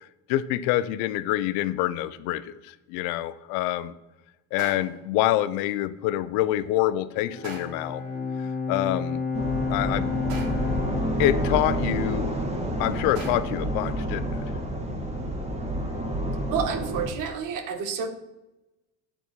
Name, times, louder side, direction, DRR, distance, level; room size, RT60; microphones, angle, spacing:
voice 1, 0.3-3.9 4.5-8.0 8.4-9.2 9.7-10.1 11.2-12.3 12.8-14.4, left 14 dB, 80° left, 15 dB, 0.6 m, -26 dB
sound 1, 4.6-5.1 7.4-8.0 10.3-10.8 13.2-13.7, right 3 dB, 80° right, 2.1 m, -41 dB
Bowed string instrument, 7.2-12.7, left 5 dB, 30° left, 2.4 m, -32 dB
sound 2, 9.3-17.1, right 1 dB, 15° right, 1.9 m, -29 dB
voice 2, 16.5-18.1, right 6 dB, 60° right, 8 dB, 1.3 m, -29 dB
9.0 x 4.2 x 6.0 m, 1.0 s
supercardioid pair, 100°, 37 cm